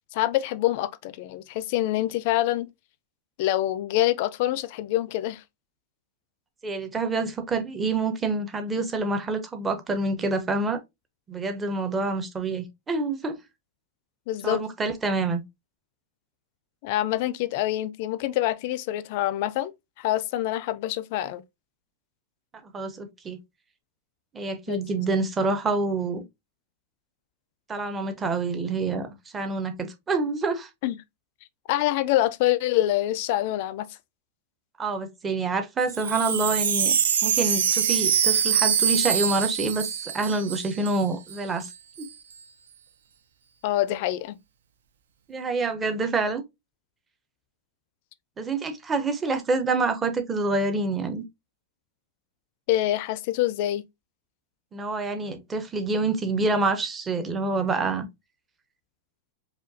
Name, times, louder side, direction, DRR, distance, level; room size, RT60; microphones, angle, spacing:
voice 1, 0.1-2.7 3.4-5.4 14.3-14.6 16.8-19.7 20.0-21.4 24.7-24.8 30.8-31.0 31.7-33.9 43.6-44.4 52.7-53.8, left 14 dB, 45° left, 0.4 m, -25 dB
voice 2, 6.6-10.8 11.3-13.4 14.4-15.4 22.6-23.4 24.3-26.2 27.7-30.7 34.8-39.9 40.1-41.7 42.0-42.1 45.3-46.4 48.4-51.2 54.7-58.1, right 3 dB, 15° right, 0.6 m, -27 dB
Wind chime, 35.8-41.0 41.3-41.4 41.6-42.1, right 8 dB, 85° right, 0.6 m, -24 dB
5.0 x 2.2 x 2.6 m
supercardioid pair, 160°, 0 cm